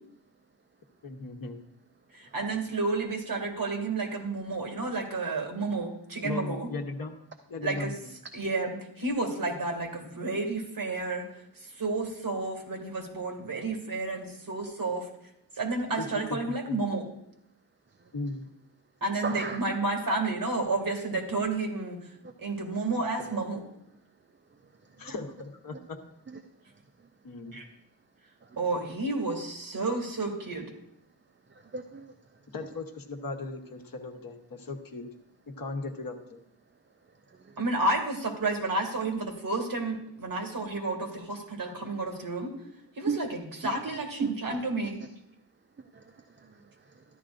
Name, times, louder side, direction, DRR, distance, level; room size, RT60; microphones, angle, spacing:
voice 1, 1.0-1.6 6.2-7.2 7.5-8.1 15.9-16.4 16.7-16.8 18.1-18.5 25.0-26.0 27.2-27.6 32.5-35.1 35.5-36.4, left 3 dB, 60° left, 4 dB, 1.1 m, -37 dB
voice 2, 2.1-6.7 7.6-7.9 8.3-11.2 11.6-15.1 15.6-17.0 19.0-22.0 22.4-23.6 27.5-27.6 28.6-30.7 37.6-42.5 43.0-45.0, right 2 dB, 60° right, 2 dB, 2.3 m, -31 dB
voice 3, 19.2-19.6 22.2-22.3 23.2-23.4 24.8-25.1 26.3-26.4 28.4-28.6 31.5-32.1 37.3-37.6 43.1-43.2 43.6-44.9 45.8-47.0, right 5 dB, 30° right, 5 dB, 0.5 m, -37 dB
13.5 x 11.0 x 2.6 m, 0.79 s
wide cardioid pair, 160°, 39 cm